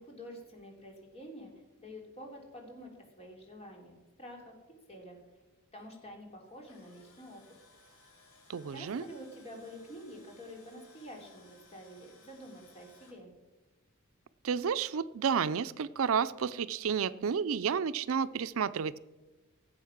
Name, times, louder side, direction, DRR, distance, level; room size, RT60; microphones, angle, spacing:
voice 1, 0.0-1.5 1.8-4.5 4.9-5.2 5.7-7.4 8.7-13.3, equal, 30° left, 1 dB, 3.3 m, -48 dB
Tools, 6.4-13.1, left 3 dB, 70° left, 4.1 m, -61 dB
voice 2, 8.5-9.0 14.4-19.0, right 7 dB, 70° right, 15 dB, 0.4 m, -31 dB
16.5 x 7.9 x 5.9 m, 1.2 s
head